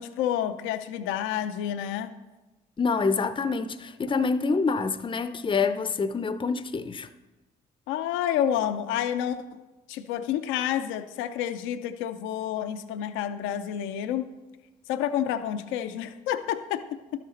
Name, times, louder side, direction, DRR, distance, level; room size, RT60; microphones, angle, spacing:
voice 1, 0.0-2.1 7.9-9.6 9.9-14.3 14.9-17.2, left 10 dB, 80° left, 0.5 m, -29 dB
voice 2, 2.8-7.1, left 4 dB, 25° left, 0.6 m, -26 dB
12.0 x 6.6 x 4.2 m
supercardioid pair, 55°, 20 cm